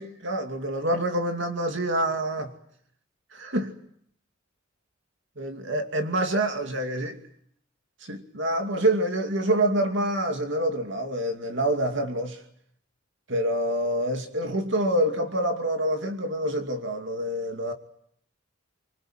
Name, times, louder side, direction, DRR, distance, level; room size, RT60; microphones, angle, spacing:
voice 1, 0.0-2.5 3.3-3.7 5.4-7.2 8.0-12.4 13.3-17.7, right 1 dB, 60° right, 2.6 m, -26 dB
25.5 x 25.0 x 9.0 m
head